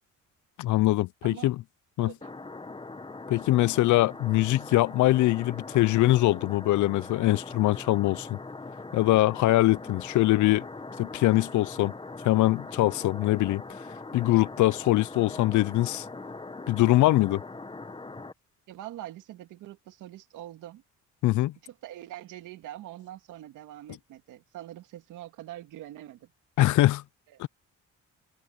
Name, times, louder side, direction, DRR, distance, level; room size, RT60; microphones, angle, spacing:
voice 1, 0.6-1.6 2.0-2.1 3.3-8.4 8.9-10.7 11.0-11.9 12.2-13.6 14.1-16.0 16.7-17.4 21.2-21.5 26.6-27.0 27.4-27.5, left 17 dB, 75° left, 0.5 m, -23 dB
voice 2, 2.0-2.3 18.7-20.8 21.6-26.3 27.3-27.4, right 13 dB, 90° right, 2.4 m, -44 dB
sound 1, 2.2-18.3, left 3 dB, 15° left, 1.5 m, -41 dB
open air
cardioid pair, 90°, 30 cm